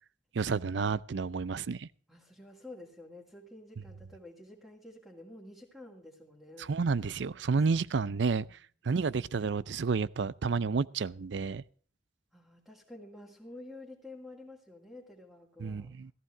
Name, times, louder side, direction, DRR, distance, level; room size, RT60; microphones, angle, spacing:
voice 1, 0.3-1.9 6.6-8.5 8.8-11.6 15.6-16.1, right 4 dB, 75° right, 0.5 m, -30 dB
voice 2, 2.1-6.7 7.7-7.8 12.3-16.0, left 2 dB, ahead, 2.3 m, -50 dB
15.0 x 14.5 x 3.3 m
head